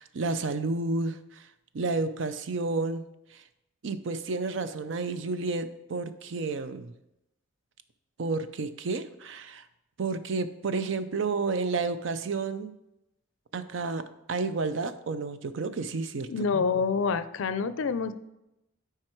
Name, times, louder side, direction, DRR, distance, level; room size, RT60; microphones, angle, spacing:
voice 1, 0.0-1.5 1.7-3.0 3.3-3.4 3.8-6.9 8.2-9.6 10.0-12.7 13.5-14.0 14.3-16.3, right 3 dB, 65° right, 11 dB, 0.5 m, -31 dB
voice 2, 16.3-18.1, left 5 dB, 75° left, 13 dB, 0.4 m, -27 dB
7.6 x 4.8 x 4.5 m, 0.90 s
head